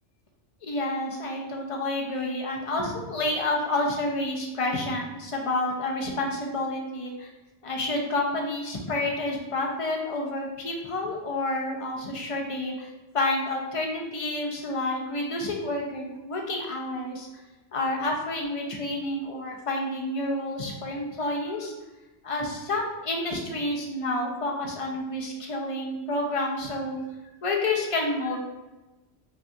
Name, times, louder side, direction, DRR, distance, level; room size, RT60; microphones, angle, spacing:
voice 1, 0.6-7.3 7.6-17.3 17.7-21.7 22.2-27.0 27.4-28.4, left 2 dB, 35° left, 1 dB, 0.6 m, -29 dB
5.2 x 2.4 x 2.7 m, 1.1 s
omnidirectional pair, 1.2 m